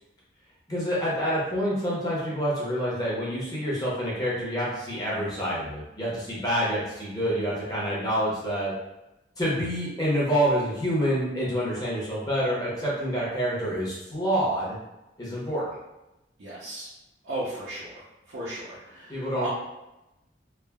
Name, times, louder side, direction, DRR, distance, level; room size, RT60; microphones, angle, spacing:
voice 1, 0.7-8.7 9.4-14.8 15.2-15.7 19.1-19.5, equal, 20° left, -7 dB, 0.7 m, -27 dB
voice 2, 16.4-16.9 17.2-18.0 18.3-19.5, right 1 dB, 75° right, -9 dB, 0.6 m, -35 dB
3.2 x 2.1 x 2.2 m, 0.96 s
head